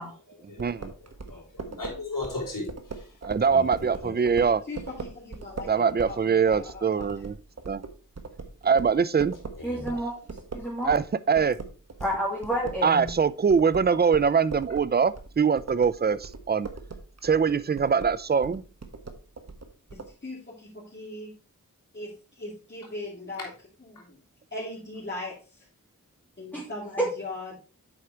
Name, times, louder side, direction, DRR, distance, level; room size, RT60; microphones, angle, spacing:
voice 1, 0.0-2.7 3.5-3.6 4.0-4.1 9.6-10.0 23.4-23.5, left 2 dB, 75° left, 2.9 m, -37 dB
voice 2, 0.6-0.9 3.2-4.6 5.7-7.4 7.7-7.8 8.6-9.3 10.8-11.6 12.8-16.7 17.2-18.6, right 6 dB, 30° right, 0.5 m, -23 dB
sound 1, 0.6-11.1 11.4-20.1, right 4 dB, 50° right, 1.3 m, -40 dB
voice 3, 4.7-7.1 9.7-9.9 20.2-20.4 20.9-21.3 22.0-22.1 22.4-23.5 23.8-24.1 24.5-25.3 26.4-27.6, left 2 dB, 35° left, 2.7 m, -38 dB
voice 4, 9.6-10.1 10.5-10.9 12.0-13.1 26.5-26.6 27.0-27.1, right 1 dB, 5° left, 2.4 m, -29 dB
7.9 x 4.9 x 4.3 m
wide cardioid pair, 55°, 32 cm